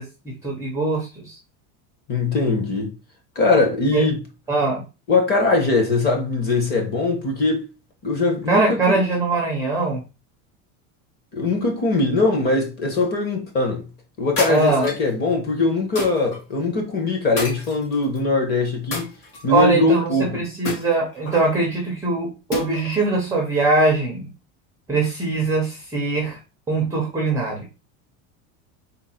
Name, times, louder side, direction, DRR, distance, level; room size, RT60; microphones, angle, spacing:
voice 1, 0.0-1.4 3.9-4.0 4.5-4.8 8.5-10.0 14.5-14.9 19.5-24.3 24.9-26.4 26.7-27.6, right 3 dB, 10° right, 0.4 m, -22 dB
voice 2, 2.1-2.9 3.4-4.2 5.1-7.7 8.0-9.0 11.3-13.8 14.2-19.1 19.4-20.4, left 3 dB, 25° left, 0.8 m, -21 dB
sound 1, 14.4-15.1 16.0-16.4 17.4-18.2 18.9-19.6 20.6-21.5 22.5-23.1, left 2 dB, 40° left, 1.7 m, -30 dB
3.8 x 2.0 x 4.2 m
cardioid pair, 170°, 40 cm